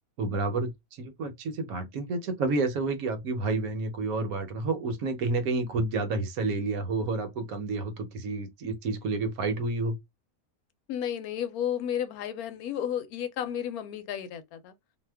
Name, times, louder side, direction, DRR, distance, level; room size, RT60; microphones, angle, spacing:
voice 1, 0.2-10.0, right 3 dB, 75° right, 1.2 m, -30 dB
voice 2, 10.9-14.7, left 9 dB, 80° left, 1.0 m, -32 dB
2.8 x 2.2 x 3.3 m
omnidirectional pair, 1.5 m